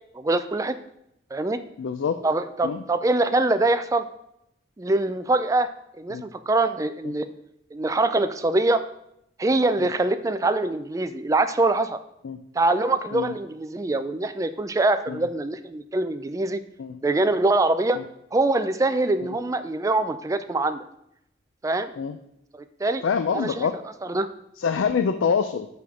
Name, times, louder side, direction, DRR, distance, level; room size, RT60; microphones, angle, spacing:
voice 1, 0.1-0.8 1.3-1.6 2.2-4.0 4.8-5.7 6.0-7.3 7.7-8.8 9.4-12.0 12.6-16.6 17.0-18.0 18.3-20.8 21.6-21.9 22.8-23.0 23.3-23.7 24.1-24.3, right 2 dB, 15° right, 11 dB, 0.3 m, -23 dB
voice 2, 1.8-2.2 2.6-2.8 6.1-6.2 7.0-7.1 9.8-9.9 12.2-12.4 13.1-13.3 15.1-15.3 16.8-17.0 17.9-18.0 19.2-19.4 22.0-22.2 23.0-23.8 24.6-25.7, left 6 dB, 85° left, 9 dB, 0.4 m, -26 dB
6.7 x 3.5 x 6.1 m, 0.79 s
head